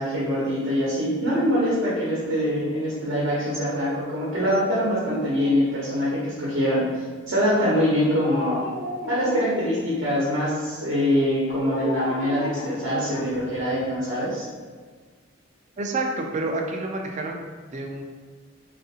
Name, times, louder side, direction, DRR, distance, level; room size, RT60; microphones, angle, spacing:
voice 1, 0.0-8.6 9.1-14.4, equal, 70° right, -7 dB, 0.8 m, -24 dB
Dog, 4.3-6.4 8.1-9.8 11.5-13.6 13.9-14.0, left 2 dB, 75° left, 0.4 m, -35 dB
voice 2, 15.8-17.4 17.7-18.0, right 2 dB, 35° right, 2 dB, 0.3 m, -28 dB
3.4 x 2.5 x 2.7 m, 1.5 s
head